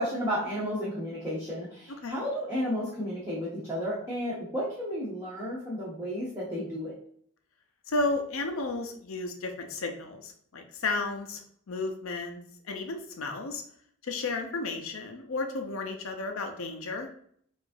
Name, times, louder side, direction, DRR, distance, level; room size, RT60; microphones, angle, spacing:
voice 1, 0.0-6.9, equal, 15° right, -8 dB, 0.8 m, -32 dB
voice 2, 7.9-11.4 11.7-12.4 12.6-13.6 14.0-17.1, left 3 dB, 70° left, 4 dB, 0.6 m, -33 dB
4.7 x 2.5 x 2.6 m, 0.62 s
head